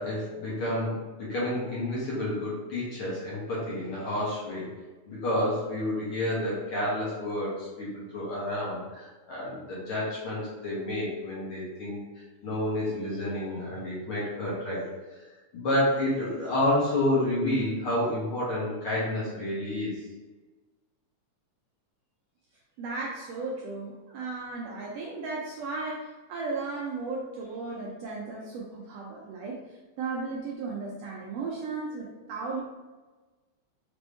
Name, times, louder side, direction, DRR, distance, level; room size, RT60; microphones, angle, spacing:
voice 1, 0.0-4.7 5.1-12.0 12.4-14.9 15.5-20.0, left 1 dB, 55° left, -7 dB, 1.8 m, -29 dB
voice 2, 22.8-32.6, right 3 dB, 75° right, -3 dB, 1.5 m, -35 dB
5.1 x 3.0 x 3.3 m, 1.2 s
omnidirectional pair, 3.3 m